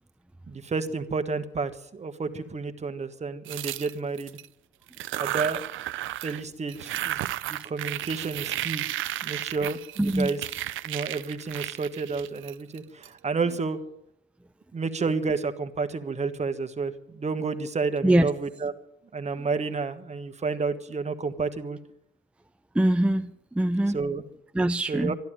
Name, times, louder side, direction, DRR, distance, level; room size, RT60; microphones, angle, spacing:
voice 1, 0.5-4.4 5.2-5.7 6.2-7.2 7.5-8.9 9.2-10.4 10.8-13.8 14.7-18.7 19.1-21.8 23.9-24.2 24.9-25.1, right 4 dB, 35° right, 9 dB, 1.4 m, -30 dB
sound 1, 3.5-4.5 4.9-6.4 6.7-13.1, right 14 dB, 80° right, 0.6 m, -33 dB
voice 2, 10.0-10.3 18.0-18.3 19.4-19.5 22.7-23.3 23.5-24.0 24.5-25.2, right 1 dB, 5° right, 6 dB, 0.6 m, -23 dB
13.0 x 11.5 x 9.0 m, 0.79 s
cardioid pair, 90°, 20 cm